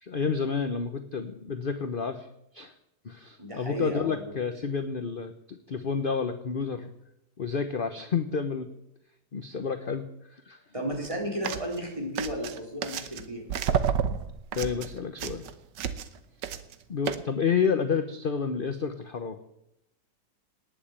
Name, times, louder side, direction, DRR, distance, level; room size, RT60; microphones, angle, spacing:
voice 1, 0.0-2.3 2.5-2.7 3.0-6.9 7.4-8.7 9.3-10.0 10.3-10.6 14.5-15.5 16.9-19.4, left 6 dB, 40° left, 9 dB, 0.8 m, -30 dB
voice 2, 3.4-4.3 10.7-13.5, equal, 15° right, 0 dB, 3.8 m, -34 dB
sound 1, 10.9-11.1 11.4-11.8 12.2-13.2 13.5-16.2 16.4-16.7 17.1-17.2, right 8 dB, 75° right, 1.6 m, -30 dB
19.0 x 7.3 x 8.8 m, 0.84 s
omnidirectional pair, 1.9 m